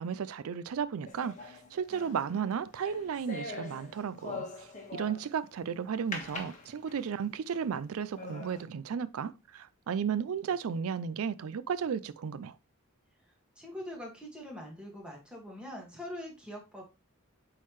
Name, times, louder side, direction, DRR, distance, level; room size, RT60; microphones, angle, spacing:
voice 1, 0.0-12.5, right 7 dB, 75° right, 0.4 m, -34 dB
sound 1, 1.1-5.4 6.1-7.2 7.7-7.8 8.2-8.6, left 3 dB, 35° left, 1.4 m, -43 dB
voice 2, 13.6-16.8, left 1 dB, 5° right, 1.8 m, -43 dB
8.3 x 3.9 x 3.1 m
head